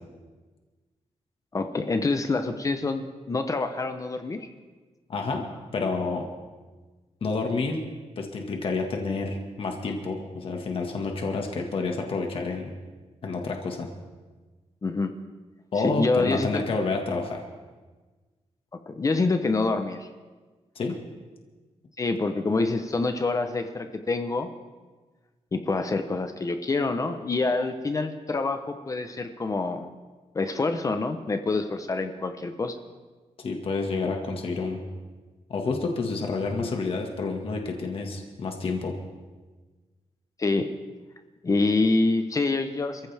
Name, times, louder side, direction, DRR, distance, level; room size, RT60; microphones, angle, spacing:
voice 1, 1.5-4.4 14.8-15.1 15.8-16.6 18.9-20.1 22.0-24.5 25.5-29.9 30.3-32.7 40.4-40.7 41.4-43.0, left 3 dB, 30° left, 7 dB, 0.8 m, -26 dB
voice 2, 5.1-5.4 5.7-6.3 7.2-7.8 8.2-12.7 13.2-13.9 15.7-17.4 20.8-21.0 33.4-34.8 35.5-39.0, left 3 dB, 50° left, 2 dB, 1.7 m, -29 dB
27.0 x 15.0 x 3.5 m, 1.3 s
wide cardioid pair, 175°, 12 cm